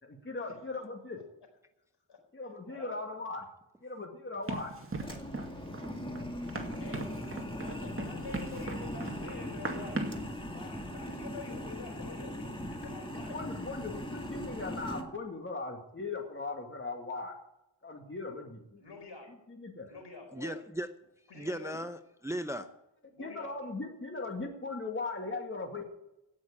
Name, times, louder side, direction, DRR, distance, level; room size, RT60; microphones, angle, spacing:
voice 1, 0.0-1.2 2.3-3.5 3.8-4.7 13.3-17.4 17.8-18.8 19.5-19.9 23.2-25.8, left 3 dB, 25° left, 2 dB, 2.2 m, -39 dB
voice 2, 2.7-3.0 6.8-7.2 7.5-10.1 10.5-13.4 18.8-19.3 19.8-20.6 21.3-21.8 23.1-23.6, left 4 dB, 65° left, 4 dB, 4.7 m, -47 dB
Run, 4.5-10.3, right 2 dB, 30° right, 2.2 m, -39 dB
sound 1, 5.0-15.0, equal, 10° left, 2.0 m, -40 dB
voice 3, 20.3-20.9 21.3-22.7, right 1 dB, 5° right, 9 dB, 0.7 m, -37 dB
17.0 x 6.3 x 8.6 m, 0.89 s
wide cardioid pair, 95°, 44 cm